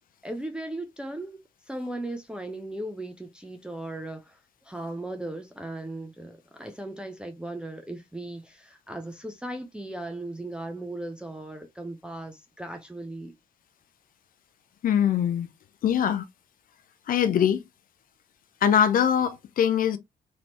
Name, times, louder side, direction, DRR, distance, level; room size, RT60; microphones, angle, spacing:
voice 1, 0.2-1.4 1.7-13.3, right 1 dB, 5° right, 0.7 m, -37 dB
voice 2, 14.8-15.5 15.8-16.3 17.1-17.6 18.6-20.0, left 9 dB, 45° left, 0.7 m, -22 dB
4.1 x 2.9 x 3.2 m
figure-of-eight pair, 40°, 20 cm